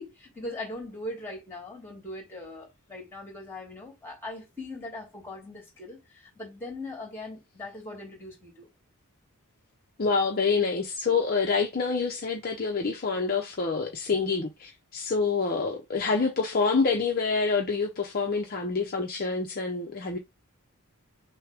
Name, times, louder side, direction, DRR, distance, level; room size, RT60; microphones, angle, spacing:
voice 1, 0.0-8.7, left 2 dB, 10° left, 2.7 m, -40 dB
voice 2, 10.0-20.2, left 4 dB, 45° left, 0.8 m, -27 dB
6.3 x 2.3 x 3.5 m
head